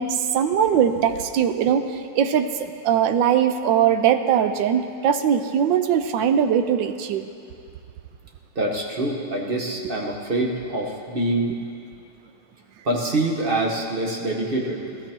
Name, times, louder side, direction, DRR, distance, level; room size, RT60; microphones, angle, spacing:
voice 1, 0.0-7.3, right 8 dB, 70° right, 8 dB, 1.3 m, -21 dB
voice 2, 8.5-11.5 12.8-14.8, right 2 dB, 30° right, -1 dB, 1.3 m, -25 dB
18.5 x 13.0 x 4.5 m, 2.4 s
omnidirectional pair, 2.4 m